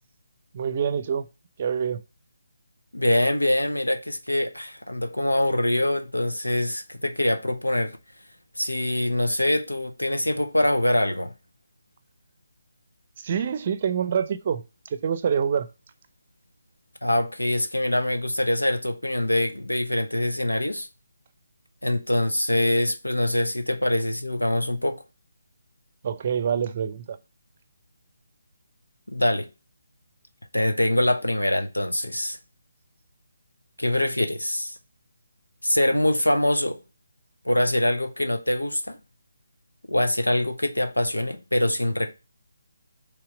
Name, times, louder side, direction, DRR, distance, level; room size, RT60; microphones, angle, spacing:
voice 1, 0.5-1.3 1.6-2.0 13.2-15.7 26.0-27.2, right 7 dB, 35° right, 0.6 m, -26 dB
voice 2, 2.9-8.0 8.6-11.3 17.0-20.9 21.8-25.0 29.1-29.5 30.5-32.4 33.8-34.8 35.6-36.8 37.4-39.0 39.9-42.1, left 1 dB, 85° left, 1.0 m, -24 dB
5.8 x 3.4 x 4.8 m
figure-of-eight pair, 150°, 0 cm